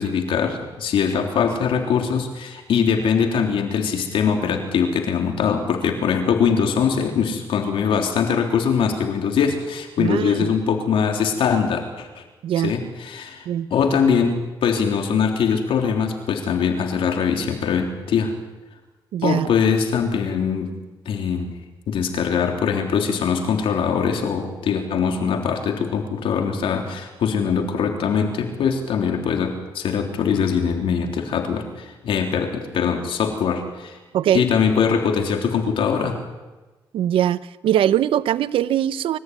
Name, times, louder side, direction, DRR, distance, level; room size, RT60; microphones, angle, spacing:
voice 1, 0.0-12.2 12.6-13.5 13.7-18.3 19.2-20.7 21.1-21.5 21.9-34.0 34.3-36.2, left 6 dB, 85° left, 3 dB, 3.5 m, -22 dB
voice 2, 10.0-10.5 12.4-12.7 13.5-13.7 19.1-19.5 34.1-34.5 36.9-39.2, right 11 dB, 85° right, 16 dB, 0.8 m, -21 dB
25.5 x 14.5 x 9.5 m, 1.2 s
cardioid pair, 75°, 9 cm